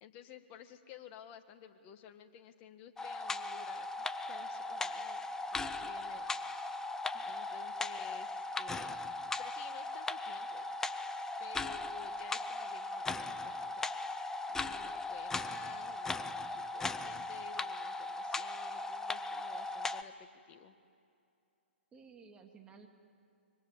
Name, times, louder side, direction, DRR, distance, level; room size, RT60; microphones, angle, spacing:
voice 1, 0.0-6.4 7.2-9.1 9.4-10.7 11.4-14.1 14.5-20.8, left 9 dB, 30° left, 7 dB, 1.8 m, -54 dB
sound 1, 3.0-20.0, left 3 dB, 10° left, 0.7 m, -38 dB
voice 2, 21.9-22.9, right 5 dB, 15° right, 3 dB, 2.4 m, -56 dB
25.0 x 23.5 x 9.7 m, 2.5 s
hypercardioid pair, 130°, 6 cm